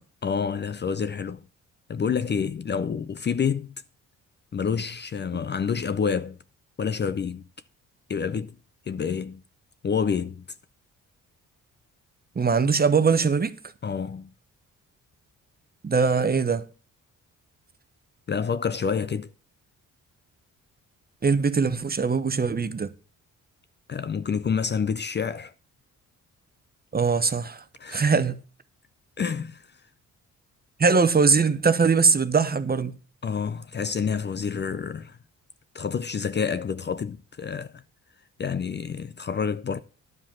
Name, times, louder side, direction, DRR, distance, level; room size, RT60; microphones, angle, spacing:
voice 1, 0.2-1.5 1.9-3.7 4.5-6.4 6.8-7.4 8.1-8.5 8.9-9.4 9.8-10.4 13.8-14.3 18.3-19.3 23.9-25.5 27.8-28.1 29.2-29.6 33.2-35.2 35.7-37.8 38.4-39.8, left 6 dB, 35° left, 0.5 m, -28 dB
voice 2, 12.4-13.6 15.8-16.6 21.2-22.9 26.9-27.6 27.9-28.4 30.8-32.9, right 5 dB, 30° right, 0.9 m, -21 dB
11.0 x 5.0 x 7.4 m
supercardioid pair, 65°, 33 cm